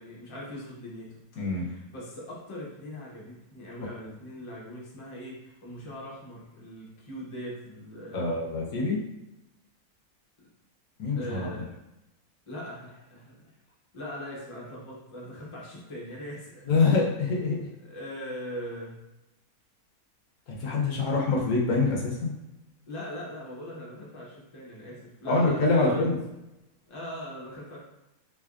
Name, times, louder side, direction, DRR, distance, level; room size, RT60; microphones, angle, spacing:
voice 1, 0.0-8.4 11.2-11.7 12.5-13.5 13.9-16.7 17.8-19.0 22.9-26.1 26.9-27.8, left 1 dB, 30° left, -4 dB, 0.6 m, -40 dB
voice 2, 8.1-9.0 11.0-11.5 16.7-17.7 20.6-22.3 25.3-26.1, left 3 dB, 75° left, -2 dB, 1.2 m, -25 dB
3.6 x 3.3 x 2.4 m, 0.92 s
omnidirectional pair, 1.6 m